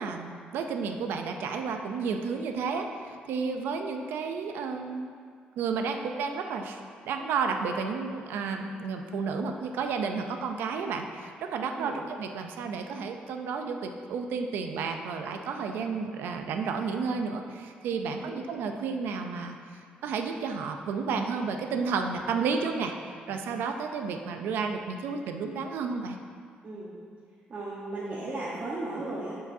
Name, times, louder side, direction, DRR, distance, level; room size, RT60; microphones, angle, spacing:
voice 1, 0.0-5.1 5.6-19.6 20.0-22.9 23.3-26.2, right 5 dB, 85° right, 5 dB, 0.5 m, -32 dB
voice 2, 26.6-27.0 27.5-29.3, right 2 dB, 40° right, -7 dB, 1.1 m, -35 dB
11.0 x 4.8 x 2.7 m, 2.2 s
cardioid pair, 120°, 4 cm